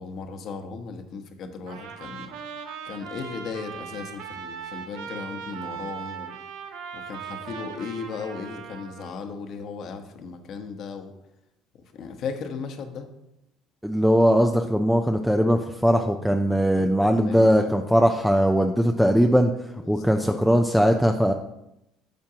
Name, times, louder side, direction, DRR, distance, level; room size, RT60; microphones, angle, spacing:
voice 1, 0.0-2.3 2.8-6.4 6.9-11.1 11.9-13.1 17.2-17.8 19.8-20.6, left 5 dB, 55° left, 7 dB, 1.1 m, -36 dB
Trumpet, 1.7-9.1, right 7 dB, 90° right, 1.1 m, -39 dB
voice 2, 13.8-19.5 19.9-21.3, equal, ahead, 5 dB, 0.5 m, -20 dB
10.5 x 7.2 x 2.9 m, 0.86 s
cardioid pair, 115°, 0 cm